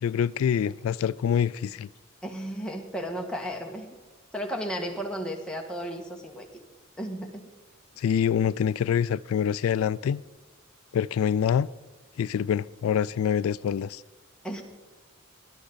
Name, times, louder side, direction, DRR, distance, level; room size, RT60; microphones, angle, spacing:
voice 1, 0.0-1.9 8.0-10.2 10.9-11.7 12.2-14.0, left 8 dB, 90° left, 0.3 m, -25 dB
voice 2, 2.2-3.9 4.3-6.5 7.0-7.5 14.4-14.6, equal, 5° left, 1.5 m, -34 dB
16.5 x 11.5 x 4.0 m
head